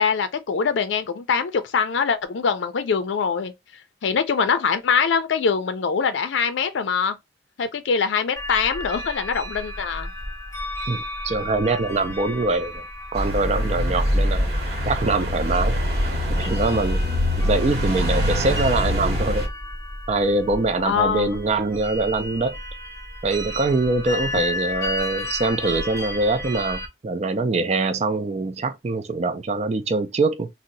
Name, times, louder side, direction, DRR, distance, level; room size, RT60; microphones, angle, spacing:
voice 1, 0.0-3.5 4.0-7.1 7.6-10.1 20.8-21.4, left 6 dB, 85° left, 0.4 m, -23 dB
sound 1, 8.4-26.9, left 1 dB, 15° left, 0.7 m, -34 dB
voice 2, 10.9-12.8 13.1-14.5 14.9-15.8 16.3-17.0 17.4-19.5 20.1-22.6 23.2-30.5, right 3 dB, 35° right, 0.4 m, -23 dB
sound 2, 13.1-19.5, equal, 55° right, 1.0 m, -23 dB
2.7 x 2.0 x 3.9 m
head